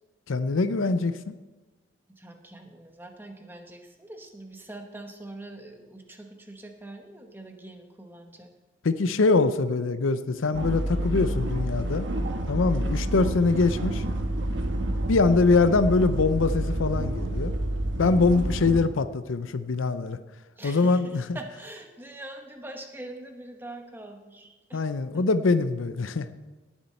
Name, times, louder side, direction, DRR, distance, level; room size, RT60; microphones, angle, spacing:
voice 1, 0.3-1.3 8.8-12.1 12.5-14.0 15.1-17.5 18.0-20.2 20.6-21.2 24.7-26.3, left 3 dB, 85° left, 12 dB, 0.6 m, -23 dB
voice 2, 2.2-8.5 20.6-24.8 25.1-25.3, right 1 dB, 10° right, 4 dB, 1.0 m, -43 dB
sound 1, 10.5-18.8, right 1 dB, 70° right, 1.2 m, -29 dB
17.5 x 7.4 x 4.3 m, 1.2 s
head